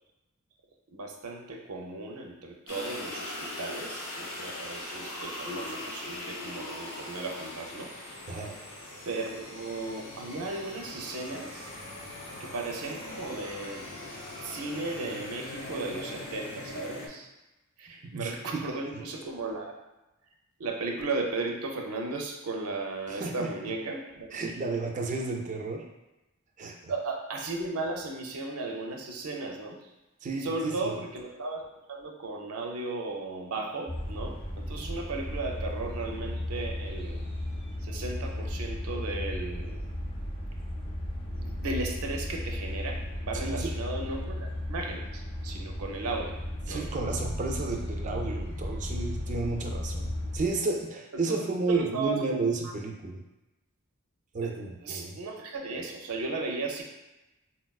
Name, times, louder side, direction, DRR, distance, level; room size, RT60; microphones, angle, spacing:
voice 1, 0.9-7.9 8.3-8.4 9.1-11.8 12.4-13.9 14.4-17.3 17.8-19.7 20.6-24.4 26.9-29.9 30.4-31.6 31.9-34.4 34.7-37.3 37.8-39.8 41.3-46.4 46.7-46.9 51.1-51.4 51.7-52.2 52.6-52.7 54.4-54.5 54.8-56.8, right 3 dB, 85° right, 1 dB, 0.5 m, -35 dB
sound 1, 2.7-17.1, left 2 dB, 70° left, 0.7 m, -40 dB
voice 2, 18.0-18.6 23.1-23.5 24.3-25.8 26.6-26.9 30.2-30.9 43.3-43.7 46.7-53.2 54.3-55.2, right 3 dB, 35° right, 2 dB, 0.4 m, -32 dB
sound 2, 33.9-50.5, left 1 dB, 25° left, 0.5 m, -35 dB
4.0 x 2.2 x 2.3 m, 1.0 s
head